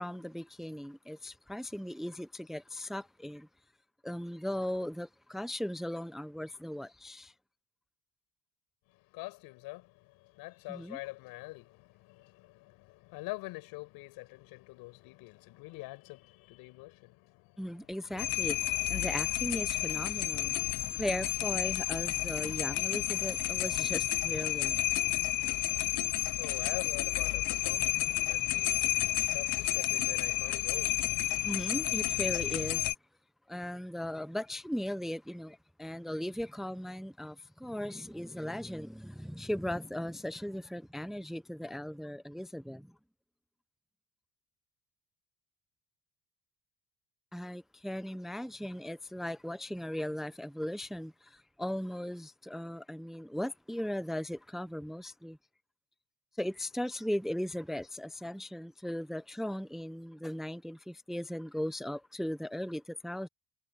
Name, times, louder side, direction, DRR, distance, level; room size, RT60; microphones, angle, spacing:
voice 1, 0.0-3.5 4.0-7.3 10.7-11.0 17.6-20.6 21.0-24.8 31.4-32.9 33.5-42.9 47.3-55.4 56.4-63.3, left 1 dB, ahead, 0.7 m, -38 dB
voice 2, 8.9-18.2 26.2-31.3, left 22 dB, 85° left, 6.4 m, -45 dB
sound 1, 18.2-32.9, left 17 dB, 60° left, 0.8 m, -31 dB
cardioid pair, 105°, 35 cm